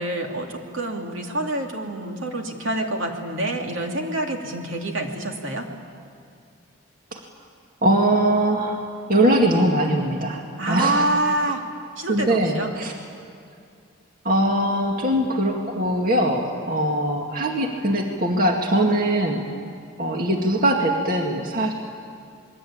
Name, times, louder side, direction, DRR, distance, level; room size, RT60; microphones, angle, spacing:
voice 1, 0.0-5.7 10.6-11.6 12.0-12.7, right 2 dB, 70° right, 2 dB, 2.8 m, -26 dB
voice 2, 7.8-8.8 9.1-10.4 10.7-11.1 12.1-12.9 14.2-19.4 20.0-21.7, right 1 dB, 40° right, 1 dB, 2.1 m, -21 dB
28.0 x 22.0 x 8.8 m, 2.4 s
head